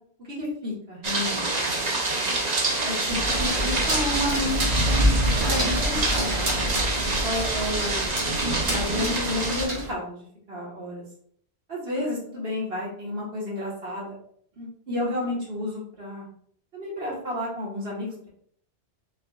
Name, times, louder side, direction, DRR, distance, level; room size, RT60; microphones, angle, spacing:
voice 1, 0.2-1.9 2.1-2.4 2.8-7.0 7.2-8.1 8.6-11.1 11.7-14.2 14.6-16.3 16.7-18.3, left 1 dB, 65° right, -4 dB, 1.8 m, -31 dB
sound 1, 1.0-9.7, right 2 dB, 40° right, 0.9 m, -27 dB
sound 2, 3.1-9.9, equal, 85° right, 1.8 m, -27 dB
5.4 x 3.9 x 2.4 m, 0.62 s
omnidirectional pair, 1.1 m